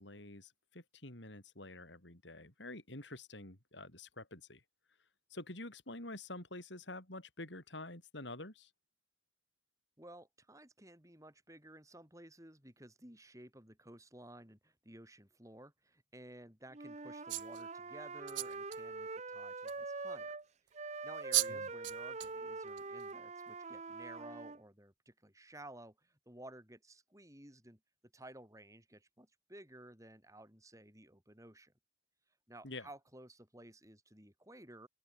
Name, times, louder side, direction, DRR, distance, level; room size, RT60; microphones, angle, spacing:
voice 1, 0.0-4.6 5.3-8.7 21.5-21.7 32.6-32.9, left 2 dB, 70° left, 5.8 m, -48 dB
voice 2, 10.0-20.4 20.7-27.8 28.1-31.7 32.5-34.9, right 1 dB, 15° right, 6.6 m, -55 dB
Wind instrument woodwind instrument, 16.7-20.4 20.7-24.6, right 3 dB, 35° right, 0.9 m, -44 dB
sound 1, 17.3-17.6 18.3-18.8 19.7-19.8 21.0-21.1 21.3-21.5 21.8-22.3 22.8-23.0, right 20 dB, 70° right, 0.4 m, -35 dB
open air
head